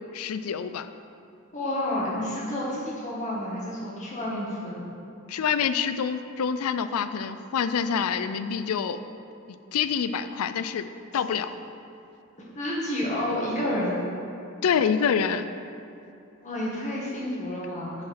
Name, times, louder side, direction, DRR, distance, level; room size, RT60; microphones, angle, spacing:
voice 1, 0.1-0.9 5.3-9.0 9.5-10.9 11.1-11.5 14.6-15.5, left 7 dB, 80° left, 11 dB, 0.4 m, -26 dB
voice 2, 1.5-4.8 12.6-14.0 16.4-18.0, left 1 dB, 35° left, -5 dB, 1.8 m, -30 dB
7.5 x 4.7 x 5.9 m, 2.6 s
head